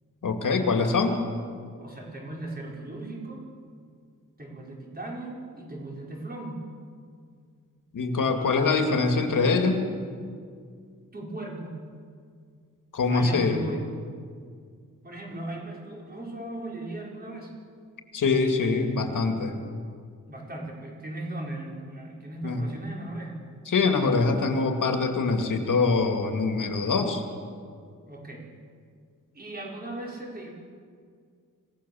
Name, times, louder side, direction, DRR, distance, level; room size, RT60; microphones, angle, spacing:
voice 1, 0.2-1.2 7.9-9.9 12.9-13.6 18.1-19.6 22.4-22.6 23.7-27.2, left 4 dB, 70° left, 5 dB, 2.3 m, -24 dB
voice 2, 1.8-3.4 4.4-6.6 11.1-11.8 13.1-13.8 15.0-17.5 20.3-23.5 28.1-28.4 29.3-30.5, right 1 dB, 30° right, -2 dB, 5.1 m, -37 dB
26.5 x 17.5 x 7.1 m, 2.1 s
wide cardioid pair, 150°, 32 cm